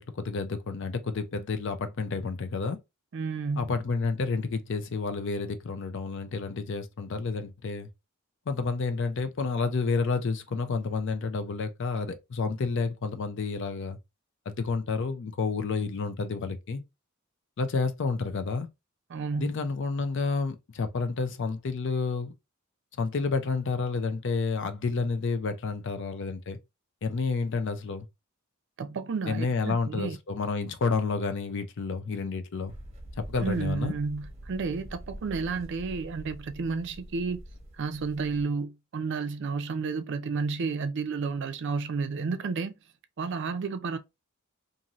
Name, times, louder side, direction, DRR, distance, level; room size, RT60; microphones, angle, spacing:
voice 1, 0.0-2.8 3.6-7.9 8.5-14.0 14.5-16.8 17.6-18.7 19.4-22.3 23.0-26.6 27.0-28.1 29.3-32.7 33.2-33.9, left 4 dB, 60° left, 0.5 m, -30 dB
voice 2, 3.1-3.7 19.1-19.5 28.8-30.2 33.4-37.4 37.8-42.8 43.2-44.0, right 4 dB, 55° right, 0.4 m, -31 dB
sound 1, 32.7-38.4, right 1 dB, 30° right, 0.9 m, -45 dB
2.6 x 2.6 x 2.9 m
head